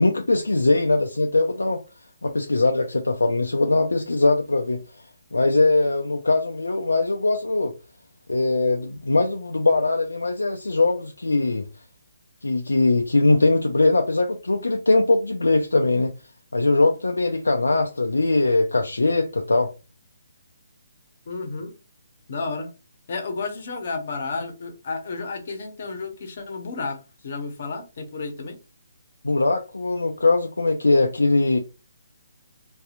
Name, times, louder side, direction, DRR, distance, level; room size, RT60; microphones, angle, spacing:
voice 1, 0.0-1.8 2.2-4.8 5.3-7.7 8.3-11.7 12.4-16.1 16.5-19.7 29.2-31.6, left 2 dB, 80° left, 0.4 m, -21 dB
voice 2, 21.3-21.7 22.3-22.7 23.1-28.6, left 4 dB, 50° left, 0.8 m, -32 dB
2.7 x 2.3 x 2.4 m
figure-of-eight pair, 140°, 0 cm